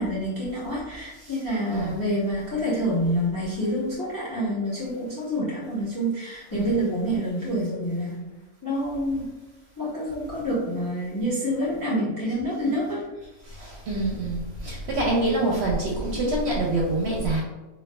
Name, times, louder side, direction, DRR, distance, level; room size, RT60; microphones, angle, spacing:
voice 1, 0.0-8.2 8.6-9.3 9.8-13.1, equal, 20° left, -6 dB, 0.6 m, -27 dB
voice 2, 13.6-17.4, right 2 dB, 60° right, -3 dB, 0.8 m, -25 dB
4.2 x 2.3 x 2.2 m, 1.1 s
omnidirectional pair, 1.5 m